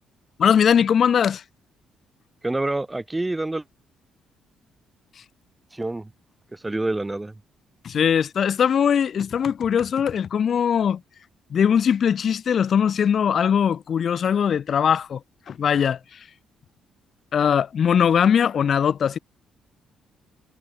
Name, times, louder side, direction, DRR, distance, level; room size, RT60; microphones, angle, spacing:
voice 1, 0.4-1.4 7.8-11.0 11.5-15.2 15.5-16.0 17.3-19.2, left 8 dB, 50° left, 3.7 m, -20 dB
voice 2, 2.4-3.6 5.7-6.1 6.5-7.3, right 2 dB, 10° right, 3.9 m, -27 dB
cardioid pair, 125°, 0 cm